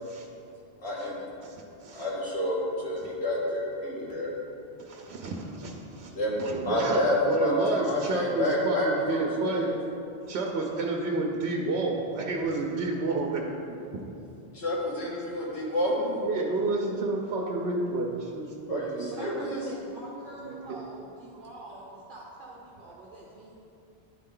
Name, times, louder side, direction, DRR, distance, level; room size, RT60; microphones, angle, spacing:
voice 1, 0.8-1.2 1.9-4.3 6.2-6.4 6.7-9.7 14.5-16.1 18.7-19.6, left 1 dB, 80° left, -5 dB, 1.7 m, -29 dB
voice 2, 4.9-6.1 6.4-9.7 10.3-14.2 16.2-19.4 20.4-20.8, right 3 dB, 85° right, 0 dB, 0.9 m, -30 dB
voice 3, 19.1-23.5, right 2 dB, 55° right, -4 dB, 0.9 m, -44 dB
9.7 x 4.3 x 3.7 m, 2.7 s
omnidirectional pair, 1.1 m